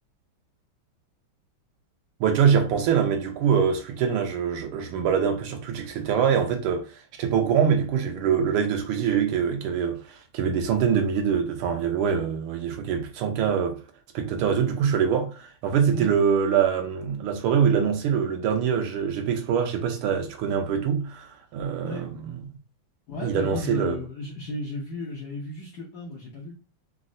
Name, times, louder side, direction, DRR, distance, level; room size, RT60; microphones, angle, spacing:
voice 1, 2.2-13.8 14.1-22.3 23.2-23.9, right 7 dB, 85° right, 1.5 m, -24 dB
voice 2, 23.1-26.5, left 2 dB, 75° left, 0.9 m, -34 dB
3.9 x 2.0 x 2.5 m
omnidirectional pair, 2.4 m